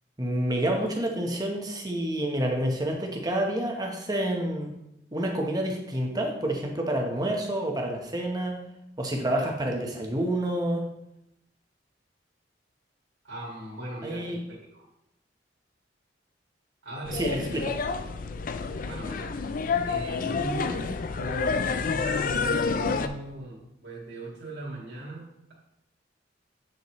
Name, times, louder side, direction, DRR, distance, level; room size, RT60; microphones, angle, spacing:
voice 1, 0.2-4.7 5.1-8.6 9.0-10.9 14.0-14.4 17.1-17.8, right 1 dB, 20° right, 1 dB, 1.1 m, -28 dB
voice 2, 13.2-14.8 16.8-17.4 18.8-19.3 19.8-23.6 23.8-25.5, right 2 dB, 70° right, -8 dB, 2.2 m, -38 dB
sound 1, 17.0-23.1, left 5 dB, 45° left, 0.4 m, -29 dB
8.5 x 5.5 x 3.1 m, 0.84 s
head